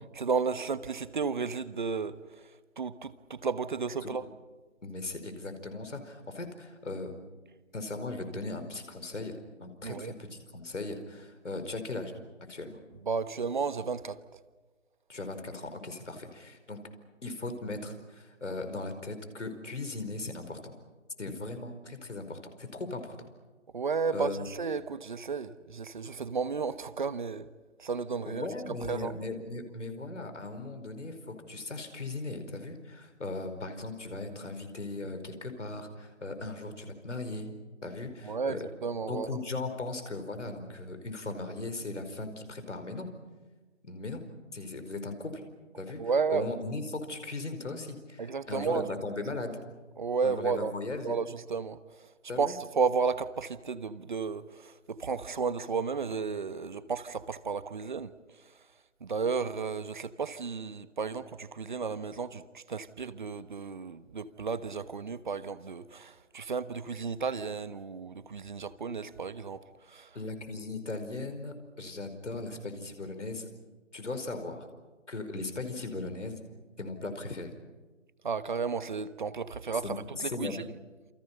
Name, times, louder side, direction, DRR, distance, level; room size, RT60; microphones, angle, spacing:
voice 1, 0.2-2.5 2.8-4.2 9.8-10.1 13.0-14.2 23.7-27.5 27.8-28.5 28.8-29.1 38.2-39.3 46.0-46.5 48.2-48.9 50.0-50.7 51.0-58.1 59.0-70.2 78.2-80.6, right 5 dB, 40° right, 14 dB, 1.2 m, -33 dB
voice 2, 4.8-7.1 7.7-12.2 12.5-12.8 15.1-16.8 17.2-20.7 21.2-23.2 24.1-24.5 28.2-37.5 37.8-38.6 39.1-43.1 43.8-44.3 44.5-45.4 45.7-46.0 46.3-49.6 50.2-51.2 52.3-52.5 70.1-73.5 73.9-74.7 75.1-76.4 76.8-77.5 79.8-80.6, left 2 dB, 65° left, 8 dB, 5.0 m, -38 dB
29.0 x 28.0 x 5.6 m, 1.3 s
figure-of-eight pair, 155°, 38 cm